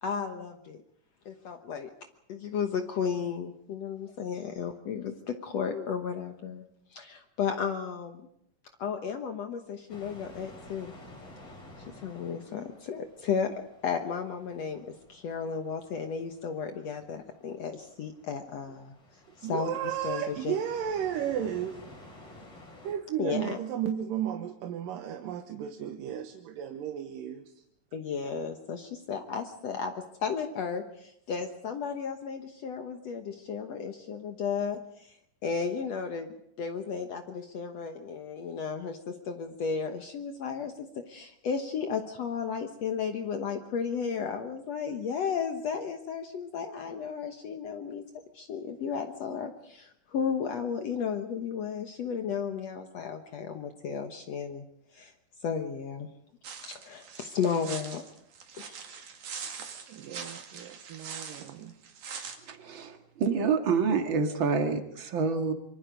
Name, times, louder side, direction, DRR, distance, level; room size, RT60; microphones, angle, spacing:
voice 1, 0.0-0.8 1.3-1.9 2.3-6.6 6.9-8.2 8.8-10.9 11.9-13.5 13.8-19.0 19.4-20.6 23.2-23.6 27.9-29.9 30.2-35.2 35.4-48.0 48.3-54.7 54.9-55.1 55.4-56.1 56.6-58.0 58.6-58.8, left 6 dB, 60° left, 6 dB, 2.0 m, -34 dB
sound 1, 9.9-22.9, left 1 dB, 40° left, 6.0 m, -52 dB
voice 2, 19.4-22.1 22.8-27.4 59.9-61.7, right 9 dB, 85° right, 5 dB, 2.8 m, -34 dB
sound 2, 56.4-62.4, right 6 dB, 60° right, 3.4 m, -42 dB
voice 3, 62.5-65.5, right 5 dB, 40° right, 5 dB, 2.3 m, -27 dB
25.0 x 24.5 x 5.2 m, 0.73 s
omnidirectional pair, 3.9 m